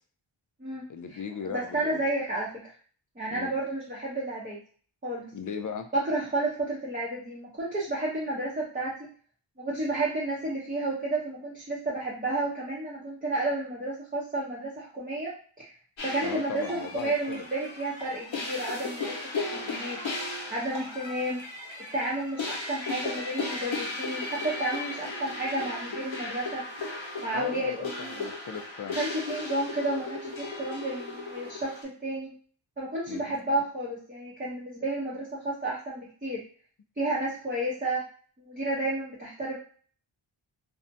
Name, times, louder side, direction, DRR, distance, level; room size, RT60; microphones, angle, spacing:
voice 1, 0.9-2.0 3.3-3.5 5.3-5.9 16.2-17.4 27.3-29.0 33.1-33.3, left 6 dB, 40° left, 7 dB, 0.4 m, -38 dB
voice 2, 1.4-2.7 3.2-4.6 5.0-5.3 5.9-9.1 9.6-15.7 16.0-20.0 20.5-21.4 21.9-26.6 27.2-28.2 28.9-32.3 32.8-36.4 37.0-38.0 38.4-39.6, right 2 dB, 20° right, -6 dB, 0.7 m, -31 dB
sound 1, 16.0-31.8, left 3 dB, 65° left, 0.8 m, -36 dB
2.5 x 2.1 x 2.6 m, 0.43 s
wide cardioid pair, 55°, 50 cm